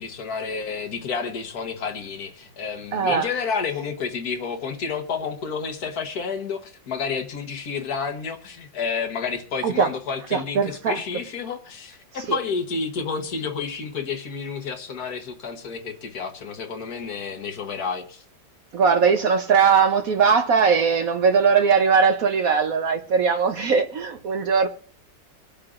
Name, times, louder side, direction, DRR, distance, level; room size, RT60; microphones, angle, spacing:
voice 1, 0.0-18.2, left 5 dB, 60° left, 1.4 m, -30 dB
voice 2, 2.9-3.3 9.6-9.9 10.3-11.0 12.2-12.4 18.7-24.7, right 6 dB, 60° right, 1.0 m, -20 dB
25.0 x 8.7 x 2.4 m
omnidirectional pair, 2.0 m